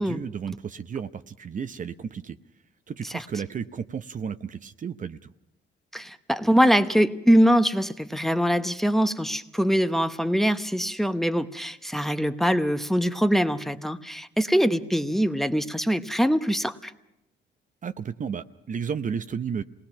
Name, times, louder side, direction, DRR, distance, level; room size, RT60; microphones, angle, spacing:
voice 1, 0.0-2.4 2.9-5.3 17.8-19.6, right 7 dB, 40° right, 10 dB, 0.7 m, -33 dB
voice 2, 5.9-16.9, equal, ahead, 9 dB, 0.9 m, -23 dB
27.0 x 19.5 x 5.9 m, 0.87 s
cardioid pair, 90°, 20 cm